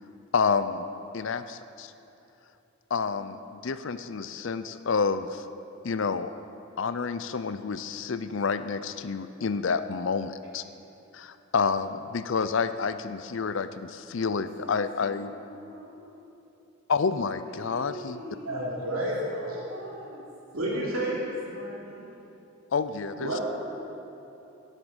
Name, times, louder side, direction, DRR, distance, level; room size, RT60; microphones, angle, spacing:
voice 1, 0.3-0.9 1.1-1.9 2.9-5.4 5.8-6.3 6.8-10.6 11.1-15.3 16.9-18.2 22.7-23.3, left 5 dB, 60° left, 12 dB, 0.5 m, -29 dB
voice 2, 14.1-16.0 17.4-19.0 19.3-20.3 20.6-20.9 21.5-22.1, equal, 60° right, -3 dB, 2.6 m, -44 dB
voice 3, 18.4-19.2 20.5-21.3 23.2-23.4, right 1 dB, 75° right, -5 dB, 3.2 m, -29 dB
16.5 x 8.0 x 7.2 m, 2.9 s
head